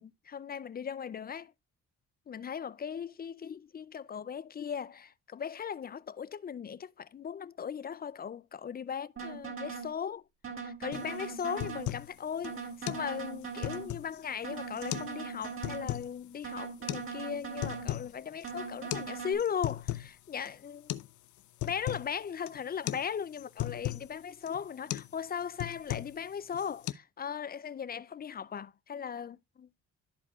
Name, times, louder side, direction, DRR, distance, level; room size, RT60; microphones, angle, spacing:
voice 1, 0.0-1.5 2.3-10.2 10.6-20.9 21.6-29.7, left 7 dB, 30° left, 0.4 m, -38 dB
sound 1, 9.2-9.9 10.4-11.9 12.4-13.9 14.4-15.9 16.4-17.9 18.4-19.3, right 5 dB, 45° right, 3.2 m, -40 dB
sound 2, 10.9-11.1 11.4-12.1 12.4-12.5 12.9-13.1 13.4-14.2 14.8-15.1 15.4-16.1 16.9-17.0 17.4-18.1 18.4-18.5 18.9-19.1 19.4-20.1 20.5-20.6 20.9-21.1 21.4-22.1 22.5-22.6 22.9-23.1 23.3-24.1 24.5-24.6 24.9-25.1 25.4-26.2 26.5-26.9, left 15 dB, 75° left, 0.6 m, -36 dB
13.5 x 4.6 x 2.4 m
cardioid pair, 90°, 30 cm